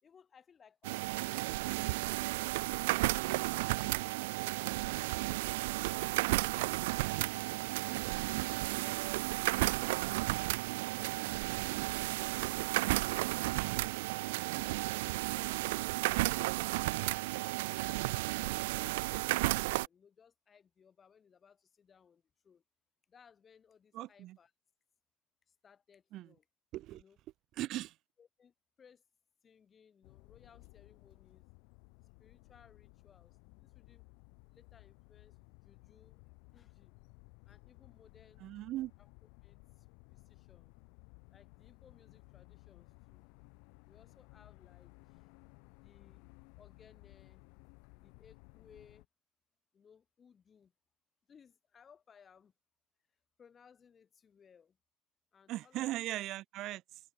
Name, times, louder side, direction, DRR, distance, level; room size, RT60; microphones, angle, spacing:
voice 1, 0.0-3.9 4.9-6.1 6.5-8.7 9.6-10.4 10.7-13.1 13.6-15.1 15.5-16.1 16.7-17.2 17.8-22.6 23.1-24.5 25.5-26.5 26.9-27.2 28.2-29.0 29.4-31.5 32.2-34.1 34.5-36.2 36.5-36.9 37.5-38.5 39.0-39.1 39.4-40.7 41.3-43.2 43.9-45.3 45.8-46.3 46.6-47.5 48.0-49.1 49.7-50.7 51.3-52.5 53.1-54.8 55.3-56.1, left 7 dB, 15° left, 2.6 m, -64 dB
sound 1, 0.8-19.9, right 21 dB, 50° right, 0.3 m, -33 dB
voice 2, 14.4-14.7 23.9-24.4 26.1-26.3 26.7-27.0 27.6-27.9 38.4-38.9 55.5-57.0, right 15 dB, 30° right, 0.8 m, -39 dB
sound 2, 30.0-49.1, left 38 dB, 40° left, 3.0 m, -59 dB
supercardioid pair, 165°, 0 cm